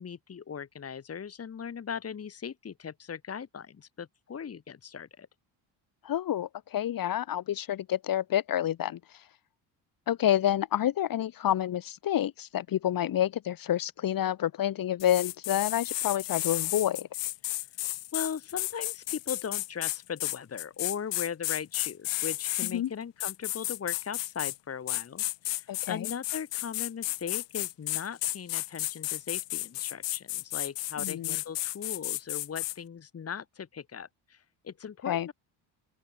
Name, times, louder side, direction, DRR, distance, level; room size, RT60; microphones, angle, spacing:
voice 1, 0.0-5.3 17.5-17.6 18.1-35.3, left 7 dB, 35° left, 3.4 m, -39 dB
voice 2, 6.0-9.0 10.1-17.1 22.7-22.9 25.7-26.1 31.0-31.4 35.1-35.3, left 11 dB, 50° left, 2.1 m, -28 dB
Aerosol spray can - Binaural, 15.0-22.7 23.2-24.6 24.9-32.8, left 18 dB, 75° left, 1.5 m, -33 dB
open air
cardioid pair, 130°, 43 cm